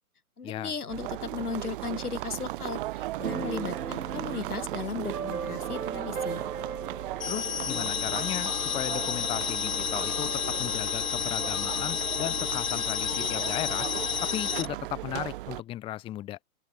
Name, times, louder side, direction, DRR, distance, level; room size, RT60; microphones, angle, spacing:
voice 1, 0.4-6.4, left 5 dB, 85° left, 5.9 m, -36 dB
sound 1, 0.9-15.6, right 16 dB, 35° right, 1.8 m, -37 dB
Keyboard (musical), 3.2-10.7, right 6 dB, 80° right, 3.1 m, -38 dB
sound 2, 7.2-14.7, left 8 dB, 70° left, 2.6 m, -30 dB
voice 2, 7.3-13.9 14.2-16.4, left 14 dB, 10° left, 1.0 m, -36 dB
open air
hypercardioid pair, 140°, 44 cm